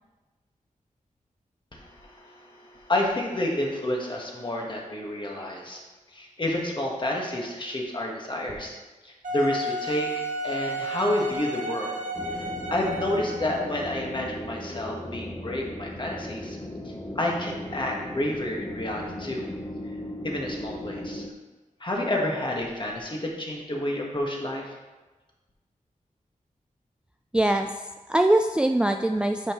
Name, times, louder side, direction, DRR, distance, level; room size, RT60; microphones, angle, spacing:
voice 1, 1.7-5.8 6.1-8.8 9.0-10.1 10.4-11.9 12.3-16.6 16.8-19.4 20.2-21.2 21.8-24.7, left 1 dB, 35° left, -2 dB, 1.6 m, -30 dB
Wind instrument woodwind instrument, 9.2-13.8, right 1 dB, 70° right, 1.2 m, -32 dB
sound 1, 12.1-21.3, left 1 dB, 15° left, 0.7 m, -37 dB
voice 2, 27.3-29.5, right 1 dB, 5° right, 5 dB, 0.3 m, -23 dB
9.8 x 5.5 x 3.1 m, 1.2 s
wide cardioid pair, 80°, 14 cm